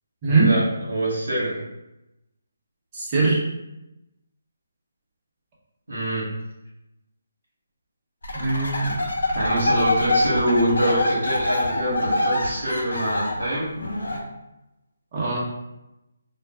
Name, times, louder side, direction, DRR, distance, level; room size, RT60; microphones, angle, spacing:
voice 1, 0.3-1.6 5.9-6.3 9.3-13.8, right 1 dB, 85° right, -6 dB, 1.0 m, -25 dB
voice 2, 2.9-3.4 8.3-9.0 15.1-15.4, right 3 dB, 30° right, -6 dB, 0.9 m, -21 dB
sound 1, 8.2-14.2, left 2 dB, 85° left, 0.8 m, -24 dB
2.5 x 2.4 x 3.3 m, 0.92 s
hypercardioid pair, 160°, 0 cm